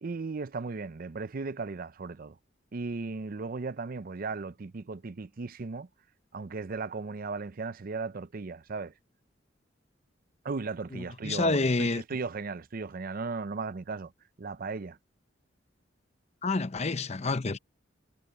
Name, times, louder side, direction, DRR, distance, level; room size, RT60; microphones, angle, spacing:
voice 1, 0.0-2.4 2.7-5.9 6.3-8.9 10.4-14.1 14.4-15.0, right 4 dB, 50° right, 0.5 m, -36 dB
voice 2, 10.9-12.0 16.4-17.6, left 3 dB, 35° left, 0.8 m, -28 dB
head